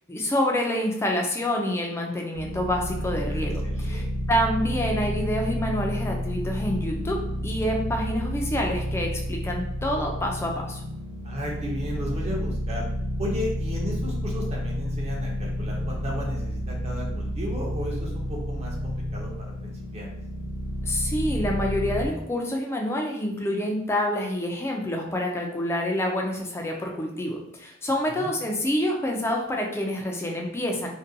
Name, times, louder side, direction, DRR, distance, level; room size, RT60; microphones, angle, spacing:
voice 1, 0.1-10.8 20.8-30.9, left 1 dB, 10° left, 1 dB, 0.3 m, -27 dB
sound 1, 2.3-22.1, equal, 65° right, 0.7 m, -30 dB
voice 2, 3.3-4.0 11.2-12.9 13.2-19.3 19.6-20.1 28.1-28.3, left 1 dB, 30° right, -2 dB, 0.6 m, -34 dB
2.5 x 2.2 x 2.6 m, 0.79 s
head